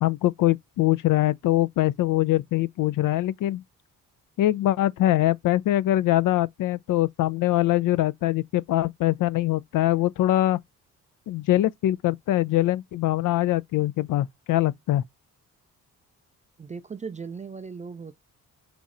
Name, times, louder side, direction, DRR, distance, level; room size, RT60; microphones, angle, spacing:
voice 1, 0.0-3.6 4.4-10.6 11.3-15.0, left 15 dB, 50° left, 0.4 m, -23 dB
voice 2, 16.6-18.1, right 5 dB, 20° right, 0.3 m, -37 dB
5.1 x 3.0 x 2.5 m
hypercardioid pair, 45°, 43 cm